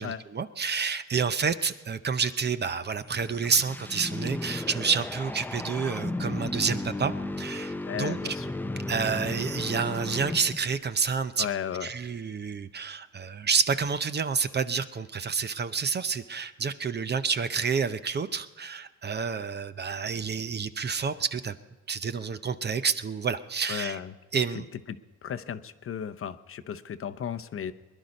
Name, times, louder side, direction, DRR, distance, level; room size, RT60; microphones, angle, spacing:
voice 1, 0.0-8.4 8.9-11.5 11.8-21.5 21.9-24.0 24.3-24.7, right 5 dB, 35° right, 12 dB, 0.7 m, -29 dB
sound 1, 2.9-10.8, left 2 dB, 5° left, 0.5 m, -34 dB
voice 2, 7.8-8.5 11.4-11.9 23.7-24.1 24.9-25.0 25.2-27.7, left 8 dB, 45° left, 10 dB, 0.8 m, -34 dB
20.5 x 11.0 x 5.3 m, 1.2 s
cardioid pair, 90°, 30 cm